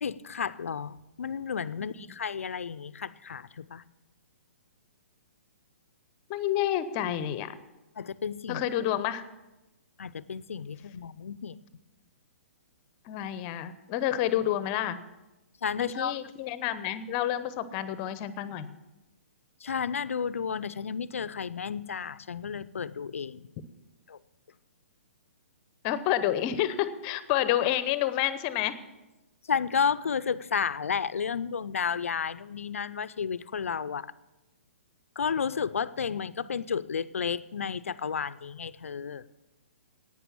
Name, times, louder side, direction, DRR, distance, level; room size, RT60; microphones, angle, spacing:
voice 1, 0.0-3.8 8.0-8.6 10.0-11.6 15.6-16.2 19.6-23.5 24.1-24.2 29.5-34.1 35.2-39.2, left 6 dB, 75° left, 16 dB, 0.5 m, -32 dB
voice 2, 6.3-7.5 8.5-9.2 13.1-15.0 15.8-18.7 25.8-28.8, left 12 dB, 30° left, 14 dB, 0.8 m, -29 dB
11.0 x 9.0 x 7.1 m, 1.1 s
hypercardioid pair, 130°, 7 cm